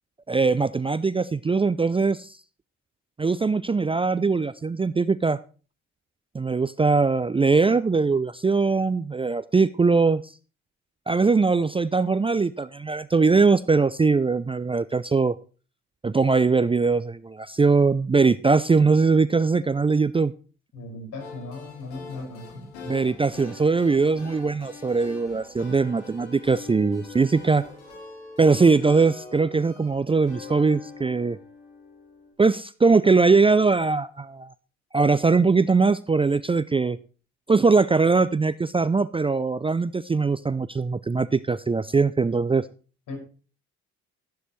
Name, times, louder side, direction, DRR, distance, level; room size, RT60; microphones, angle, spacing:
voice 1, 0.3-2.4 3.2-5.4 6.3-10.3 11.1-15.3 16.0-20.3 22.8-27.6 28.4-31.4 32.4-34.5 34.9-37.0 37.5-42.6, right 4 dB, 15° right, 16 dB, 0.5 m, -21 dB
voice 2, 20.7-22.7 43.1-43.2, left 3 dB, 65° left, 1 dB, 6.2 m, -37 dB
sound 1, 21.2-32.3, left 3 dB, 85° left, 3.7 m, -43 dB
12.5 x 11.0 x 3.2 m, 0.37 s
hypercardioid pair, 55°, 34 cm